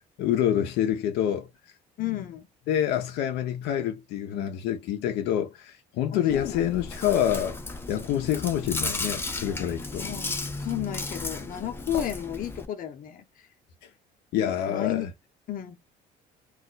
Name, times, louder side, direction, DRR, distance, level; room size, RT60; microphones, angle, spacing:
voice 1, 0.2-1.5 2.7-7.6 7.9-10.1 14.3-15.1, left 10 dB, 85° left, 0.6 m, -27 dB
voice 2, 2.0-2.5 6.1-6.8 10.0-13.5 14.3-15.1 15.5-15.8, left 12 dB, 55° left, 0.8 m, -33 dB
Chewing mastication, 6.3-12.6, left 3 dB, 15° left, 0.5 m, -34 dB
2.3 x 2.1 x 3.9 m
cardioid pair, 110°, 17 cm